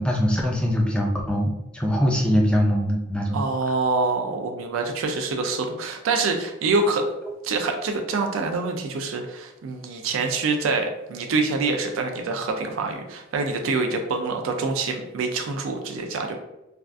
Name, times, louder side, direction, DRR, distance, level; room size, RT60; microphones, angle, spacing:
voice 1, 0.0-3.4, equal, 5° left, -1 dB, 0.3 m, -22 dB
voice 2, 3.3-7.0 7.4-16.4, right 3 dB, 80° right, 4 dB, 0.4 m, -26 dB
3.5 x 2.4 x 2.4 m, 0.97 s
head